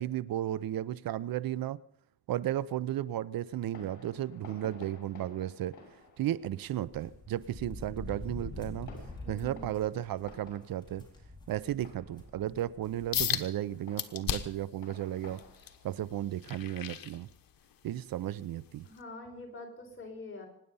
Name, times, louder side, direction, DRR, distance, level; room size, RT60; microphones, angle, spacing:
voice 1, 0.0-1.8 2.3-5.7 6.2-8.9 9.3-11.0 11.5-15.4 15.8-17.3 17.8-18.8, right 12 dB, 75° right, 18 dB, 0.6 m, -34 dB
Fireworks, 3.5-17.7, left 3 dB, 55° left, 5.6 m, -55 dB
sound 1, 6.6-13.4 13.7-13.8 14.9-15.0 15.3-15.5, left 2 dB, 10° left, 4.6 m, -46 dB
voice 2, 9.2-9.7 18.8-20.5, left 2 dB, 35° left, 1 dB, 5.2 m, -45 dB
sound 2, 13.1-13.5 14.0-14.7 15.2-17.7 18.2-18.4 19.0-19.1, left 10 dB, 75° left, 1.3 m, -34 dB
24.5 x 10.0 x 5.5 m, 0.68 s
cardioid pair, 120°, 35 cm